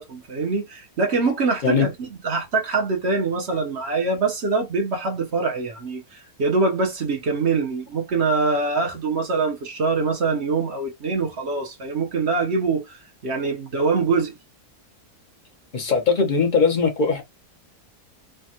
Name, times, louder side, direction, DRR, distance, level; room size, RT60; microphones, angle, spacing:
voice 1, 0.0-14.4, right 4 dB, 50° right, 0.9 m, -24 dB
voice 2, 15.7-17.2, left 5 dB, 45° left, 0.7 m, -20 dB
3.4 x 2.2 x 2.7 m
omnidirectional pair, 1.6 m